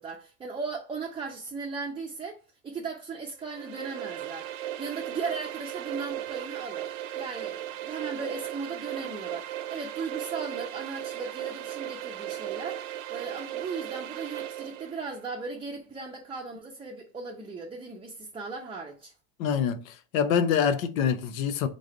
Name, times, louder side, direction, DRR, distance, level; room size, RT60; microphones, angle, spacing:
voice 1, 0.0-4.5 4.8-6.9 7.2-19.1, right 4 dB, 15° right, 0.5 m, -37 dB
sound 1, 3.4-15.1, right 12 dB, 85° right, 0.8 m, -36 dB
voice 2, 19.4-21.7, left 7 dB, 80° left, 0.8 m, -25 dB
4.0 x 3.2 x 3.7 m
supercardioid pair, 120°, 40 cm